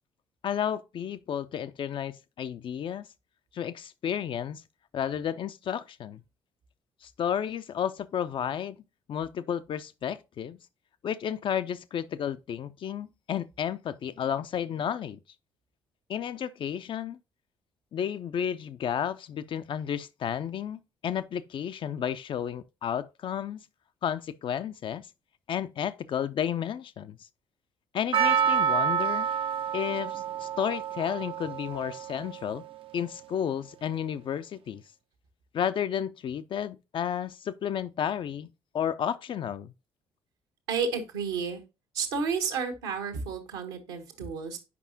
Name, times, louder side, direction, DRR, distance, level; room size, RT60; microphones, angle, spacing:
voice 1, 0.4-3.1 3.5-4.6 4.9-6.2 7.0-8.8 9.1-10.6 11.0-15.2 16.1-17.2 17.9-23.7 24.0-25.1 25.5-27.2 27.9-29.3 29.7-32.6 32.9-34.8 35.5-38.5 38.7-39.7, left 9 dB, 40° left, 0.5 m, -32 dB
Percussion, 28.1-33.1, right 7 dB, 45° right, 0.6 m, -29 dB
voice 2, 40.7-41.6 41.9-44.6, right 5 dB, 70° right, 1.3 m, -31 dB
8.4 x 5.4 x 2.7 m
figure-of-eight pair, 45°, 13 cm